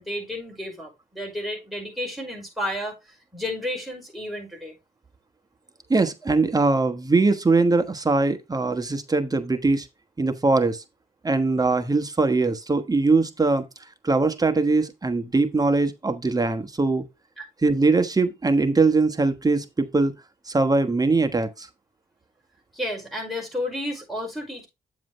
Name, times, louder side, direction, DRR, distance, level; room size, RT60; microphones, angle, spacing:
voice 1, 0.0-4.8 17.4-17.5 22.7-24.7, left 1 dB, ahead, 5.2 m, -32 dB
voice 2, 5.9-9.9 10.2-10.8 11.2-13.6 14.0-17.0 17.6-20.1 20.5-21.7, right 3 dB, 25° right, 1.1 m, -21 dB
9.1 x 7.3 x 3.1 m
cardioid pair, 90°, 16 cm